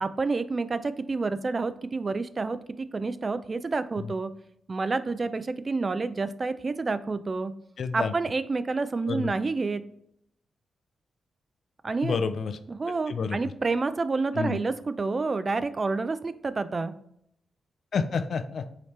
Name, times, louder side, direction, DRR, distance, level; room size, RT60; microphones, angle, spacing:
voice 1, 0.0-4.3 4.7-7.5 7.9-9.8 11.8-12.2 12.7-16.9, right 3 dB, 45° right, 13 dB, 0.3 m, -29 dB
voice 2, 7.8-8.1 9.1-9.3 12.0-12.6 13.1-13.4 14.3-14.6 17.9-18.7, left 5 dB, 70° left, 10 dB, 0.4 m, -29 dB
4.9 x 2.8 x 3.1 m, 0.73 s
supercardioid pair, 50°, 0 cm